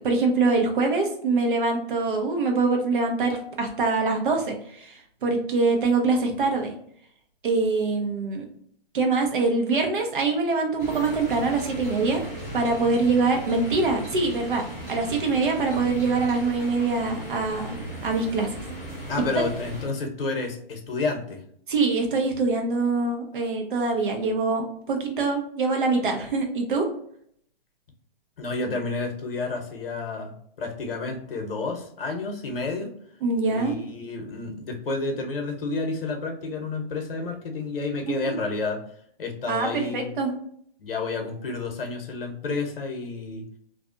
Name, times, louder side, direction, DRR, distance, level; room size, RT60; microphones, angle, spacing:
voice 1, 0.0-6.7 7.4-8.4 8.9-12.2 12.5-17.8 18.0-18.6 21.7-26.8 33.2-33.8 38.2-38.3 39.5-40.3, right 3 dB, 60° right, 3 dB, 0.8 m, -24 dB
sound 1, 10.8-19.9, right 1 dB, 30° right, 1.0 m, -37 dB
voice 2, 19.1-21.4 28.4-30.3 30.6-32.9 33.5-38.8 39.2-40.1 40.8-43.4, left 3 dB, 70° left, 4 dB, 0.9 m, -30 dB
2.5 x 2.3 x 2.5 m, 0.66 s
hypercardioid pair, 155°, 30 cm